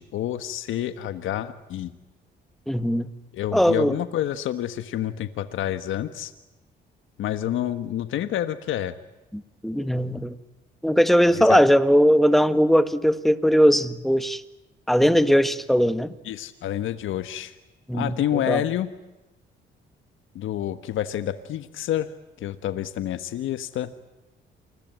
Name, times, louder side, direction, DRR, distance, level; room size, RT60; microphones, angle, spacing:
voice 1, 0.0-1.9 3.3-6.3 7.2-8.9 11.3-11.6 16.2-17.5 17.9-18.9 20.3-22.1 22.4-23.9, left 11 dB, 80° left, 1.4 m, -28 dB
voice 2, 2.7-3.1 3.5-4.0 9.3-10.3 10.8-14.4 14.9-16.1 17.9-18.6, equal, ahead, 1.8 m, -19 dB
28.5 x 22.0 x 9.3 m
cardioid pair, 90°, 20 cm